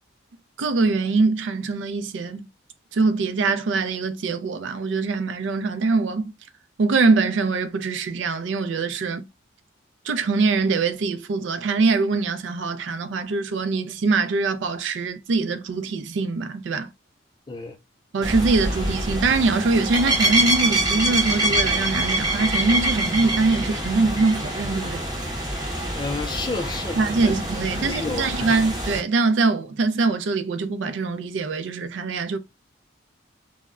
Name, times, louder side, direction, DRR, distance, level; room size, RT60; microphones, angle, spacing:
voice 1, 0.6-2.5 2.9-6.3 6.8-9.3 10.1-16.9 18.1-25.0 27.0-32.4, right 3 dB, 70° right, 0.4 m, -23 dB
sound 1, 18.2-29.0, right 1 dB, 20° right, 0.7 m, -25 dB
voice 2, 25.9-27.3 27.7-28.5, left 3 dB, 25° left, 0.3 m, -31 dB
2.1 x 2.1 x 3.4 m
head